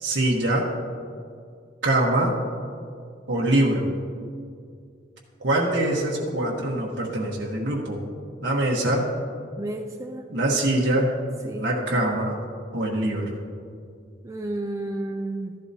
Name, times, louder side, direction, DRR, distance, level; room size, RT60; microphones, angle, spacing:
voice 1, 0.0-0.7 1.8-2.3 3.3-3.9 5.4-8.0 8.4-9.1 10.3-11.1 11.6-12.4 12.7-13.4, right 1 dB, 80° right, -3 dB, 1.2 m, -23 dB
voice 2, 9.6-10.2 11.4-12.0 14.2-15.6, right 1 dB, 15° right, 2 dB, 0.4 m, -32 dB
14.0 x 11.5 x 2.8 m, 2.3 s
head